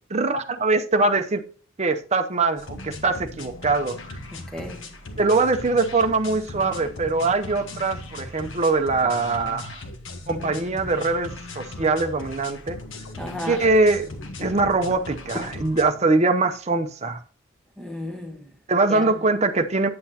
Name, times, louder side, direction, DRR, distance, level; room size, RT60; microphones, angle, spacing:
voice 1, 0.1-1.4 1.8-4.0 5.2-9.8 10.3-12.8 13.5-14.1 14.4-17.2 18.7-19.9, right 3 dB, 35° right, 0.7 m, -22 dB
sound 1, 2.6-15.8, left 2 dB, 65° left, 1.1 m, -38 dB
voice 2, 4.3-4.8 13.2-13.7 14.4-14.6 15.3-15.4 17.8-18.5 18.9-19.2, left 1 dB, 5° left, 1.1 m, -33 dB
8.6 x 7.7 x 2.8 m
head